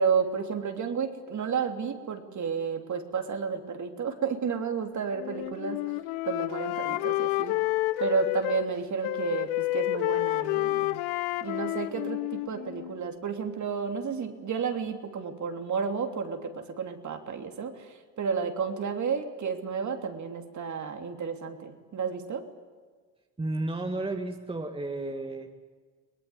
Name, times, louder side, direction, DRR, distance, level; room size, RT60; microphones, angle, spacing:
voice 1, 0.0-5.8 6.2-7.6 8.0-11.0 11.4-22.5, right 6 dB, 40° right, 5 dB, 3.2 m, -31 dB
Wind instrument woodwind instrument, 5.2-8.7 9.0-13.0, left 18 dB, 75° left, 1.2 m, -30 dB
voice 2, 23.4-25.6, right 2 dB, 10° right, 3 dB, 2.1 m, -32 dB
23.0 x 19.0 x 9.8 m, 1.5 s
supercardioid pair, 90°, 46 cm